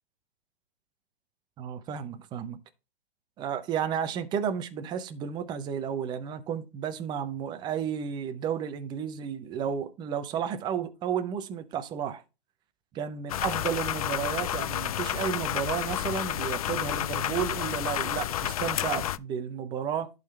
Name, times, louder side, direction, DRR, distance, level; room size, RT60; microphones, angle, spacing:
voice 1, 1.6-2.6 3.4-12.2 12.9-20.1, right 8 dB, 15° right, 0.7 m, -32 dB
sound 1, 13.3-19.2, left 11 dB, 40° left, 0.4 m, -30 dB
11.0 x 4.0 x 4.2 m
hypercardioid pair, 130°, 30 cm